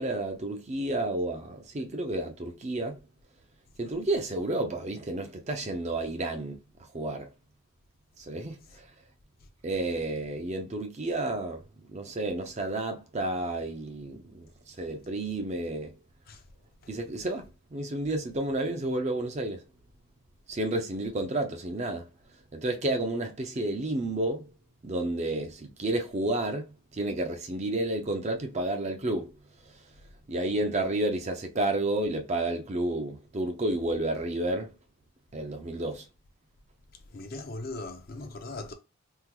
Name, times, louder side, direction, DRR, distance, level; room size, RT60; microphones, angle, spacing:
voice 1, 0.0-3.0 3.8-6.6 6.9-7.3 8.2-8.6 9.6-11.6 11.9-15.9 16.9-19.6 20.5-22.1 22.5-24.5 24.8-26.6 26.9-29.3 30.3-34.7 35.3-36.1, right 2 dB, 30° right, 0.5 m, -31 dB
voice 2, 37.1-38.7, left 2 dB, 45° left, 0.6 m, -39 dB
3.6 x 2.0 x 2.9 m
head